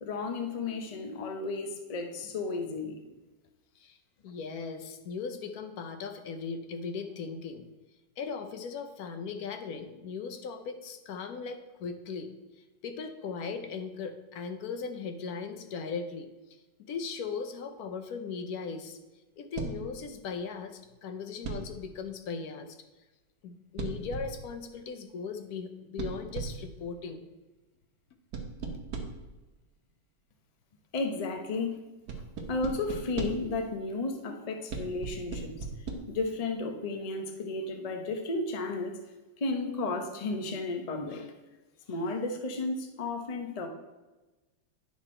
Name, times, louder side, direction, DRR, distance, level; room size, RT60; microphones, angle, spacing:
voice 1, 0.0-3.0 30.9-31.8 32.5-35.7 36.1-39.0 39.4-41.3 41.9-43.7, left 3 dB, 40° left, 4 dB, 0.5 m, -33 dB
voice 2, 4.2-7.7 8.2-12.3 12.8-16.3 16.9-19.0 19.4-22.8 23.4-27.2, left 5 dB, 60° left, 7 dB, 1.1 m, -38 dB
sound 1, 19.6-19.9 21.4-21.8 23.8-24.5 26.0-26.7 28.3-29.3 32.1-33.6 34.7-35.9, right 4 dB, 60° right, 1.5 m, -37 dB
9.5 x 5.9 x 4.4 m, 1.1 s
omnidirectional pair, 2.0 m